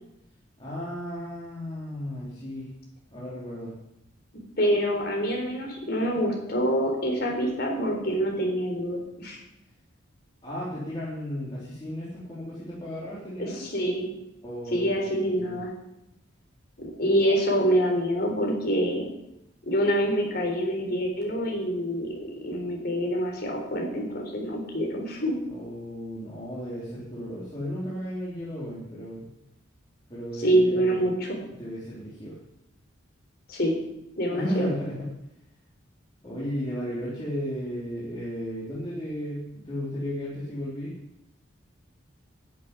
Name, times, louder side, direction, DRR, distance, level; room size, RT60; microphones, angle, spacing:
voice 1, 0.6-2.7 3.1-3.7 10.4-13.6 14.4-15.5 25.5-29.3 30.1-31.1 31.6-32.4 34.3-35.1 36.2-40.9, equal, 25° left, -8 dB, 3.6 m, -34 dB
voice 2, 4.6-9.4 13.4-14.1 14.7-15.7 16.8-19.1 19.6-22.1 22.4-25.4 30.4-31.4 33.5-33.7 34.2-34.7, equal, 50° left, 0 dB, 4.2 m, -26 dB
11.5 x 7.5 x 9.8 m, 0.84 s
head